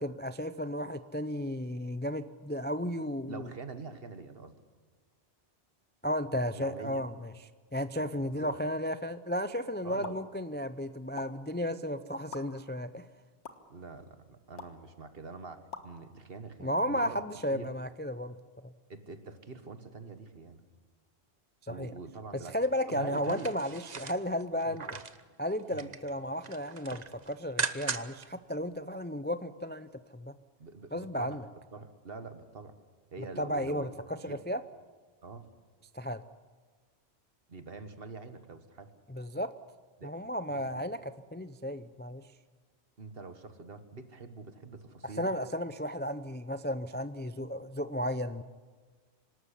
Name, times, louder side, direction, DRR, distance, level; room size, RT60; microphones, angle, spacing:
voice 1, 0.0-3.5 6.0-7.3 7.7-13.0 16.6-18.3 21.6-21.9 22.3-25.0 25.4-30.3 30.9-31.4 33.4-34.6 35.9-36.2 39.1-39.5 40.0-42.2 45.2-48.4, equal, 15° left, 12 dB, 0.4 m, -34 dB
voice 2, 3.3-4.6 6.6-7.0 8.0-8.6 9.8-10.2 13.7-17.2 17.5-17.7 18.9-20.6 21.7-22.6 22.9-23.5 24.7-24.8 25.7-25.9 30.6-31.5 31.7-32.8 33.1-33.9 34.3-34.4 35.2-35.5 37.5-38.9 40.0-40.2 40.5-40.8 43.0-45.3, right 4 dB, 60° right, 9 dB, 1.6 m, -45 dB
sound 1, 10.0-10.2 11.2-11.3 12.3-12.4 13.4-13.5 14.6-14.8 15.7-15.9, left 4 dB, 85° left, 1.8 m, -42 dB
sound 2, 23.1-25.2 25.6-26.1 26.4-28.3 28.6-28.7, right 5 dB, 40° right, 1.0 m, -38 dB
26.0 x 13.0 x 10.0 m, 1.4 s
omnidirectional pair, 1.1 m